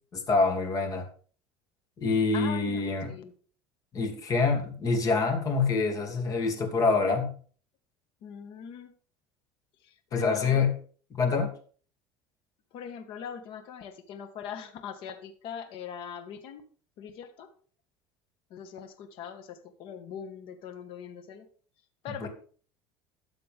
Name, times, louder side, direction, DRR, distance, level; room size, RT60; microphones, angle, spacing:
voice 1, 0.1-1.0 2.0-3.1 3.9-7.3 10.1-10.7 11.1-11.5 22.2-22.3, left 4 dB, 35° left, 3 dB, 2.8 m, -26 dB
voice 2, 2.3-3.3 8.2-8.9 9.8-10.7 12.7-16.6 17.0-17.5 18.5-21.5 22.0-22.3, left 7 dB, 60° left, 7 dB, 1.8 m, -41 dB
13.0 x 7.7 x 3.7 m, 0.43 s
cardioid pair, 135°, 10 cm